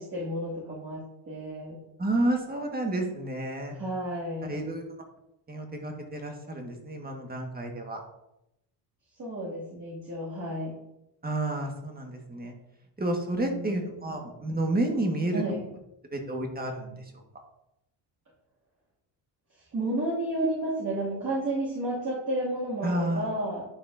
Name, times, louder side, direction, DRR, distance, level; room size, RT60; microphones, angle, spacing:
voice 1, 0.0-1.8 3.7-4.5 9.2-10.7 13.4-14.1 15.3-15.7 19.7-23.7, right 1 dB, 40° right, -7 dB, 2.4 m, -32 dB
voice 2, 2.0-3.7 4.5-4.8 5.5-8.0 11.2-12.5 13.0-15.4 16.1-17.0 22.8-23.3, right 1 dB, 20° right, 2 dB, 1.6 m, -30 dB
11.0 x 4.2 x 2.7 m, 0.85 s
supercardioid pair, 85°, 48 cm